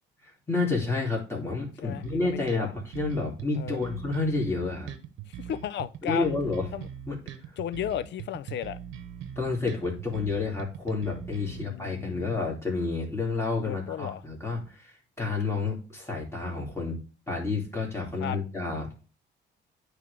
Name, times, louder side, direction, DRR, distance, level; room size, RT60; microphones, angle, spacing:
voice 1, 0.2-4.9 6.0-6.6 7.1-7.2 9.4-17.0 17.3-18.9, left 3 dB, 15° left, 2.7 m, -30 dB
voice 2, 1.8-2.7 3.5-3.9 5.4-6.4 6.7-6.9 7.6-8.8 11.4-12.4 13.6-14.2 18.2-18.4, left 11 dB, 65° left, 0.5 m, -34 dB
sound 1, 2.0-11.6, right 10 dB, 80° right, 0.9 m, -41 dB
9.5 x 3.3 x 3.4 m
cardioid pair, 90°, 20 cm